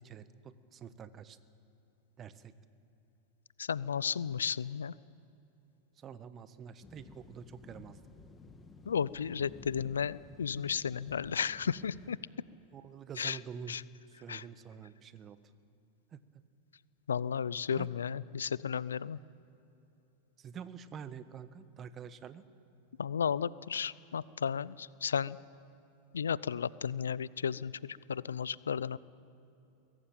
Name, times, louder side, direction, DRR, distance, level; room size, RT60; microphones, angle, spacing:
voice 1, 0.0-1.4 2.2-2.5 6.0-8.0 12.7-13.8 14.1-15.4 16.1-16.2 17.7-17.9 20.4-22.4, right 7 dB, 30° right, 13 dB, 1.2 m, -47 dB
voice 2, 3.6-4.9 8.9-12.2 13.2-13.4 13.7-13.8 14.3-14.4 17.1-19.2 23.0-25.4 26.1-29.0, left 7 dB, 85° left, 20 dB, 0.5 m, -34 dB
sound 1, 6.8-12.1, left 4 dB, 20° left, 2.0 m, -54 dB
22.5 x 17.5 x 8.9 m, 3.0 s
hypercardioid pair, 95°, 0 cm